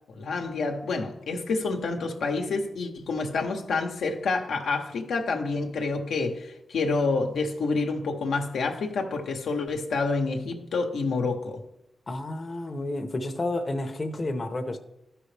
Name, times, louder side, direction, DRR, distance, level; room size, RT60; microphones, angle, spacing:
voice 1, 0.1-11.6, left 3 dB, 90° left, 0.9 m, -28 dB
voice 2, 12.1-14.8, left 2 dB, 40° left, 0.8 m, -31 dB
13.0 x 5.5 x 3.3 m
cardioid pair, 70°, 0 cm